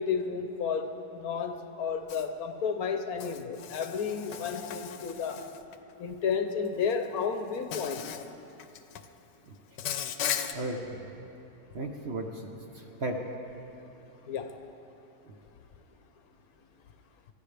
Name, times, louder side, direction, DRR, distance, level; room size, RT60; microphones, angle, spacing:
voice 1, 0.0-5.5 6.0-8.1 14.3-14.6, left 6 dB, 65° left, 7 dB, 1.2 m, -32 dB
Insect, 2.1-2.3 3.2-5.8 6.9-7.1 7.7-8.3 8.6-9.1 9.8-10.5, left 9 dB, 90° left, 1.3 m, -36 dB
voice 2, 10.5-11.0 11.7-13.2, right 2 dB, 45° right, 2 dB, 1.0 m, -35 dB
24.5 x 14.5 x 3.4 m, 2.9 s
omnidirectional pair, 1.8 m